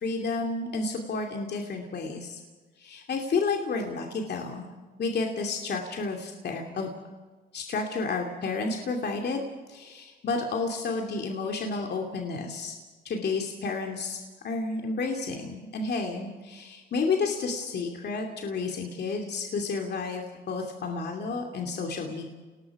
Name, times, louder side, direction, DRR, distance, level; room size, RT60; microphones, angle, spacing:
voice 1, 0.0-2.4 2.8-4.7 5.0-6.9 7.5-9.4 9.7-12.7 13.0-22.2, left 4 dB, 55° left, 2 dB, 2.7 m, -31 dB
30.0 x 19.0 x 4.9 m, 1.3 s
cardioid pair, 90°, 20 cm